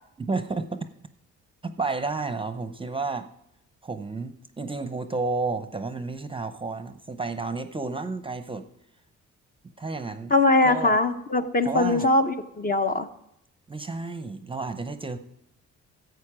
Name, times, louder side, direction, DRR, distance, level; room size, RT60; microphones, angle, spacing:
voice 1, 0.2-0.9 1.6-3.3 3.8-8.7 9.8-10.3 10.6-11.0 11.6-12.1 13.7-15.2, right 3 dB, 15° right, 10 dB, 0.7 m, -31 dB
voice 2, 10.3-13.1, left 2 dB, 30° left, 8 dB, 0.8 m, -21 dB
11.5 x 8.0 x 4.9 m, 0.79 s
cardioid pair, 90°, 30 cm